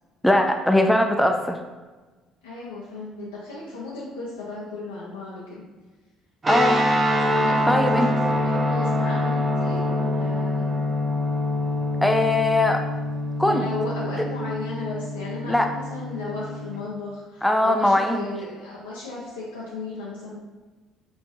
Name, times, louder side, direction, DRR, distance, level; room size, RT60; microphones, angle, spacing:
voice 1, 0.2-1.6 6.5-6.8 7.7-8.1 12.0-12.8 13.4-13.6 15.5-15.7 17.4-18.2, left 1 dB, 5° left, 4 dB, 0.3 m, -20 dB
voice 2, 2.4-5.6 7.1-10.7 13.4-20.4, left 3 dB, 85° left, -7 dB, 0.6 m, -35 dB
sound 1, 6.4-16.8, left 1 dB, 30° right, 0.7 m, -25 dB
4.1 x 3.3 x 2.5 m, 1.3 s
hypercardioid pair, 50°, 0 cm